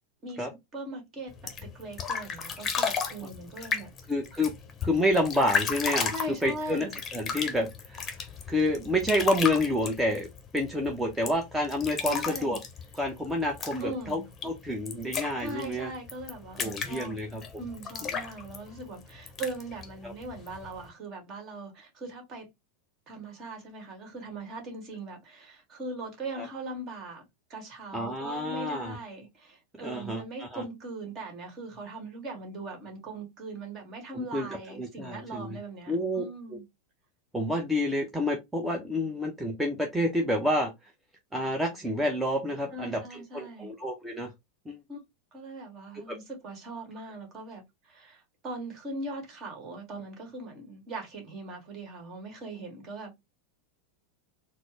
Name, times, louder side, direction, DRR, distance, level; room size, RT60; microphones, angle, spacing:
voice 1, 0.2-3.9 6.1-7.0 12.0-12.6 13.8-14.3 15.4-17.2 17.6-22.5 23.1-27.2 27.5-36.6 42.7-43.7 44.9-45.0 45.3-53.1, right 2 dB, 35° right, 1.6 m, -40 dB
sound 1, 1.3-20.9, left 6 dB, 25° left, 0.8 m, -35 dB
voice 2, 4.1-4.5 4.8-8.2 8.5-12.6 13.0-15.9 16.6-17.4 20.0-20.1 26.4-26.5 27.9-29.0 29.8-30.6 34.1-34.5 34.8-35.6 35.9-36.2 37.3-40.7 41.3-43.0 43.3-44.3 44.7-44.8 46.1-46.2, left 1 dB, 5° right, 0.8 m, -29 dB
4.1 x 2.0 x 3.0 m
figure-of-eight pair, 90°, 0 cm